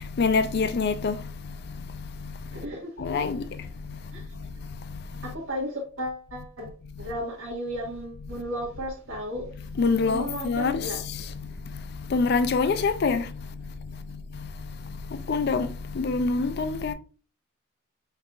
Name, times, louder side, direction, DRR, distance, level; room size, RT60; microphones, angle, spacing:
voice 1, 0.2-1.1 3.0-3.4 9.8-10.7 12.1-13.2 15.3-15.7 16.0-16.9, left 4 dB, 50° left, 0.4 m, -24 dB
voice 2, 2.5-3.1 4.1-4.2 5.2-6.7 7.0-9.5 10.1-11.0, equal, 80° right, 1.4 m, -34 dB
5.5 x 3.4 x 2.4 m
head